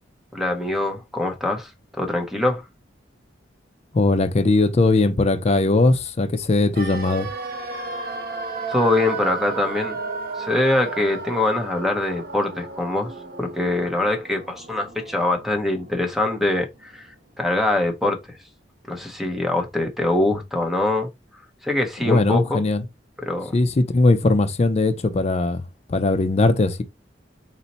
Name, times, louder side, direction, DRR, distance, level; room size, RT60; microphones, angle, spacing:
voice 1, 0.3-2.6 8.7-10.0 10.4-13.1 13.4-17.1 17.4-18.2 18.9-21.1 21.6-22.6 23.2-23.5, left 2 dB, ahead, 0.7 m, -23 dB
voice 2, 3.9-7.3 22.0-22.8 23.5-25.6 25.9-26.8, left 2 dB, 35° left, 0.5 m, -19 dB
sound 1, 6.7-16.7 16.9-17.0, right 4 dB, 55° right, 0.7 m, -34 dB
4.1 x 2.1 x 4.0 m
head